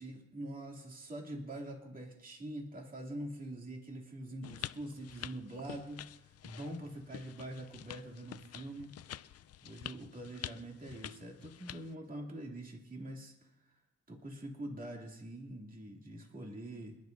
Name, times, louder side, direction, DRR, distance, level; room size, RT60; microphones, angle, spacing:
voice 1, 0.0-9.0 9.6-13.7 14.1-17.0, right 1 dB, 30° right, 0 dB, 2.5 m, -44 dB
sound 1, 4.4-11.9, left 12 dB, 55° left, 0.5 m, -48 dB
27.0 x 10.5 x 2.6 m, 0.91 s
cardioid pair, 90°, 30 cm